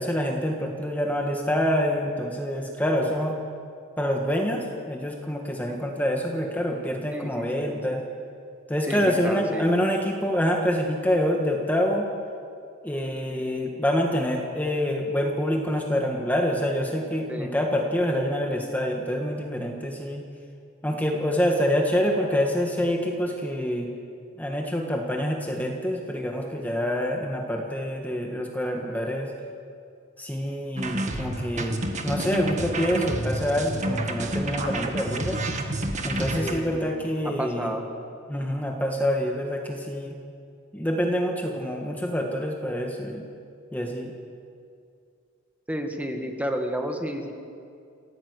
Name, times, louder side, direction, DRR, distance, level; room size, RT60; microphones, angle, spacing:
voice 1, 0.0-3.4 4.0-8.0 8.7-12.1 12.8-20.2 20.8-23.9 24.4-29.3 30.2-31.8 32.0-35.4 36.0-37.7 38.3-40.2 40.7-43.2 43.7-44.1, equal, 10° left, 1 dB, 1.5 m, -26 dB
voice 2, 7.1-7.8 8.9-9.7 17.3-17.5 36.4-36.9 37.2-37.8 45.7-47.3, equal, 5° right, 3 dB, 1.8 m, -31 dB
sound 1, 30.8-36.5, right 1 dB, 35° right, 1.8 m, -29 dB
29.0 x 14.0 x 8.2 m, 2.4 s
head